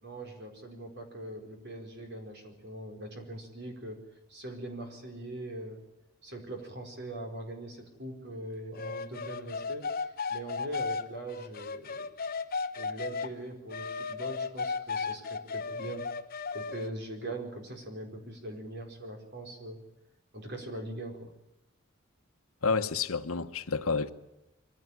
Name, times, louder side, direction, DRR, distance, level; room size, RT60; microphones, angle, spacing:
voice 1, 0.0-4.0 4.3-5.8 6.2-12.0 12.7-16.1 16.5-19.8 20.3-21.3, right 1 dB, 50° right, 4.5 m, -41 dB
sound 1, 8.8-13.3 13.7-16.9, left 4 dB, 45° left, 1.0 m, -35 dB
voice 2, 22.6-24.1, left 4 dB, 75° left, 1.1 m, -29 dB
23.0 x 15.5 x 9.9 m
head